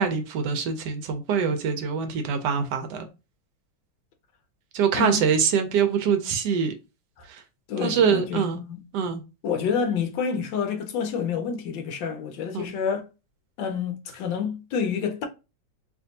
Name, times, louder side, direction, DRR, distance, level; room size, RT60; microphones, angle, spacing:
voice 1, 0.0-3.1 4.7-6.7 7.3-7.4 7.8-8.6 8.9-9.2 12.5-12.7, right 6 dB, 70° right, 1.1 m, -24 dB
voice 2, 7.7-8.8 9.4-13.0 13.6-15.3, left 6 dB, 75° left, 1.3 m, -28 dB
3.3 x 2.8 x 2.7 m
omnidirectional pair, 2.1 m